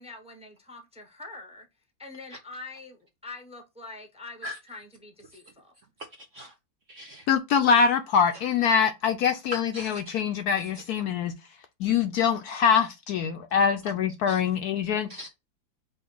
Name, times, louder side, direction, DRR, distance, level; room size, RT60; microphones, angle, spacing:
voice 1, 0.0-1.7 2.0-5.7, left 3 dB, 5° right, 0.5 m, -44 dB
voice 2, 6.1-6.5 6.9-7.3 9.5-10.2 11.0-11.1 14.3-14.4 15.1-15.3, equal, 65° right, 0.8 m, -40 dB
voice 3, 7.3-11.3 11.8-15.1, left 6 dB, 70° left, 0.9 m, -24 dB
5.4 x 2.6 x 3.7 m
omnidirectional pair, 2.0 m